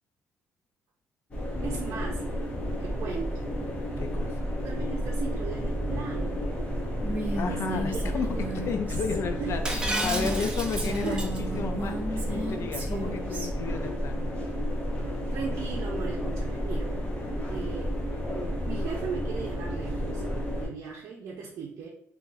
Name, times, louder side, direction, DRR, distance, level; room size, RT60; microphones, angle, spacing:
sound 1, 1.3-20.7, equal, 25° left, 1.0 m, -31 dB
voice 1, 1.6-2.2 2.8-3.4 4.6-6.4 7.5-8.6 9.4-9.7 10.2-10.5 11.0-11.3 15.3-16.9 17.5-18.0 18.7-20.2 20.6-21.9, right 6 dB, 65° right, -2 dB, 0.6 m, -37 dB
voice 2, 4.0-4.4 7.4-14.3, left 5 dB, 55° left, 7 dB, 0.5 m, -33 dB
Female speech woman speaking, 7.0-10.4 10.8-13.5, right 1 dB, 30° right, 1.0 m, -35 dB
Shatter, 9.7-11.4, right 2 dB, 15° right, 0.5 m, -32 dB
2.9 x 2.6 x 3.8 m, 0.67 s
cardioid pair, 135°, 5 cm